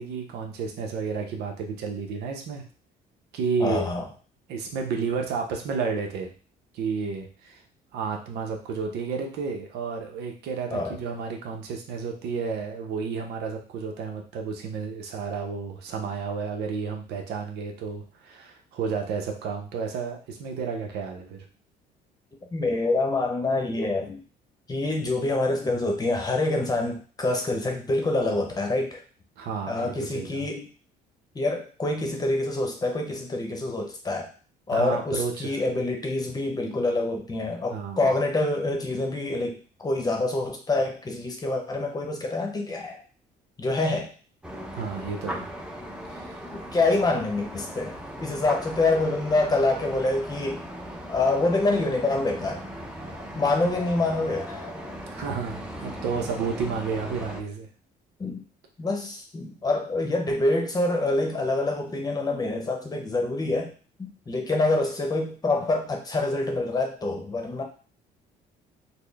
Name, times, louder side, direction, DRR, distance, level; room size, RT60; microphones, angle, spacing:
voice 1, 0.0-2.6 3.3-3.8 4.5-6.3 6.7-7.6 7.9-21.5 29.4-30.5 34.7-35.6 37.7-38.1 44.7-45.5 46.1-46.4 55.1-57.7, right 5 dB, 80° right, 3 dB, 0.8 m, -31 dB
voice 2, 3.6-4.0 10.7-11.0 22.5-24.2 24.7-29.0 29.7-30.6 31.3-34.3 34.7-43.0 43.6-44.1 46.5-50.6 51.1-52.6 53.3-54.7 58.2-58.4 58.8-63.7 64.0-67.6, left 2 dB, 20° left, 2 dB, 0.9 m, -26 dB
amsterdam north street, 44.4-57.4, equal, 5° right, 0.7 m, -38 dB
4.2 x 2.1 x 3.4 m, 0.38 s
cardioid pair, 110°, 17 cm